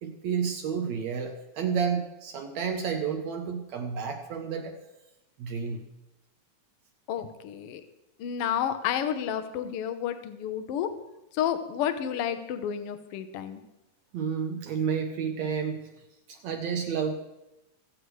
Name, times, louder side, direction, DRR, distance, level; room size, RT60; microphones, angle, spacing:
voice 1, 0.0-4.8 5.4-5.8 14.1-15.9 16.3-17.1, right 6 dB, 70° right, 4 dB, 1.9 m, -30 dB
voice 2, 7.1-7.8 8.2-10.9 11.4-13.6, left 9 dB, 75° left, 9 dB, 1.3 m, -30 dB
23.5 x 8.2 x 3.2 m, 0.95 s
omnidirectional pair, 3.7 m